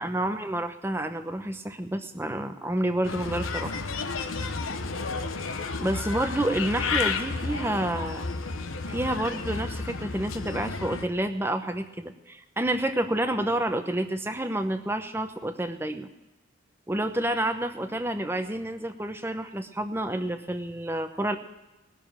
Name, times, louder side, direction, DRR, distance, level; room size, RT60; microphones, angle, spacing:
voice 1, 0.0-3.8 5.8-8.3 8.9-16.1 16.9-21.4, right 1 dB, 10° right, 8 dB, 0.8 m, -29 dB
Bird, 3.0-11.0, left 4 dB, 85° left, 1.0 m, -32 dB
19.0 x 6.7 x 8.8 m, 1.0 s
head